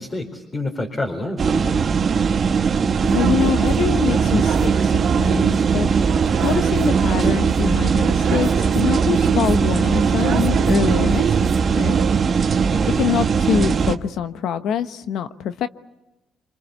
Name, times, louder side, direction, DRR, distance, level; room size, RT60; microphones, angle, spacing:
voice 1, 0.0-1.8 12.7-13.0, left 2 dB, 30° left, 4.2 m, -28 dB
sound 1, 1.4-14.0, right 6 dB, 45° right, 1.3 m, -20 dB
voice 2, 3.0-5.9 6.4-12.0 13.0-15.7, left 9 dB, 80° left, 1.1 m, -25 dB
sound 2, 3.0-12.2, right 7 dB, 75° right, 2.0 m, -24 dB
26.5 x 25.0 x 7.1 m
cardioid pair, 90°, 0 cm